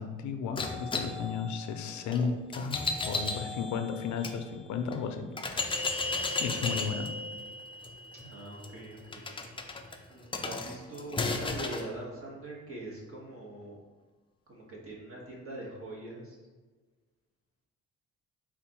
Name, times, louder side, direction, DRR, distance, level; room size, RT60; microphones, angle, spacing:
voice 1, 0.0-5.3 5.6-7.1, left 6 dB, 70° left, 6 dB, 0.5 m, -34 dB
sound 1, 0.6-4.4 4.9-5.0 5.4-11.9, left 3 dB, 15° left, 0.4 m, -35 dB
voice 2, 8.1-9.2 10.1-13.7 14.5-16.4, right 1 dB, 45° right, -3 dB, 1.5 m, -43 dB
4.4 x 2.5 x 4.2 m, 1.3 s
cardioid pair, 90°, 30 cm